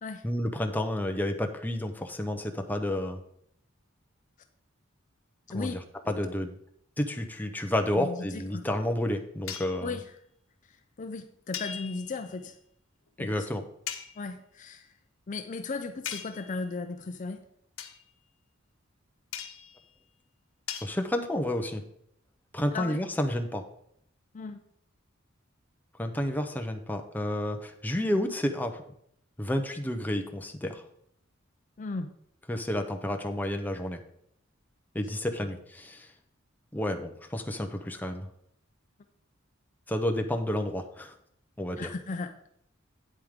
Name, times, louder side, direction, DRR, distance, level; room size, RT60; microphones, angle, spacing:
voice 1, 0.2-3.2 5.5-5.8 6.1-6.5 7.0-10.0 13.2-13.6 20.8-21.8 22.5-23.6 26.0-28.8 29.4-30.8 32.5-34.0 34.9-36.1 36.7-38.3 39.9-41.1 41.6-41.9, left 1 dB, 10° left, 4 dB, 0.7 m, -30 dB
voice 2, 7.9-8.7 9.8-10.1 11.0-12.6 13.2-13.5 14.2-14.9 15.3-17.4 22.7-23.0 24.3-24.6 31.8-32.1 35.4-35.5 41.8-42.3, left 4 dB, 40° left, 8 dB, 0.5 m, -36 dB
sound 1, 9.5-9.8 11.5-12.3 13.9-14.2 16.0-16.6 17.8-18.0 19.3-19.8 20.7-20.9, left 9 dB, 85° left, 0.9 m, -38 dB
9.1 x 8.2 x 3.6 m, 0.72 s
head